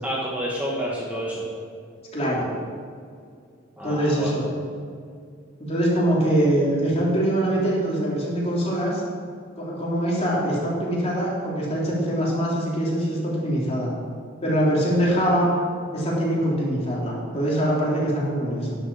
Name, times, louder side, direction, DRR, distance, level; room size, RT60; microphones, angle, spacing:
voice 1, 0.0-1.5 3.8-4.4, equal, 10° right, -4 dB, 1.4 m, -29 dB
voice 2, 2.1-2.5 3.8-4.5 5.6-9.0 9.6-13.9 14.4-15.5 15.9-18.8, right 1 dB, 30° left, -5 dB, 3.4 m, -23 dB
10.5 x 8.0 x 7.0 m, 2.2 s
head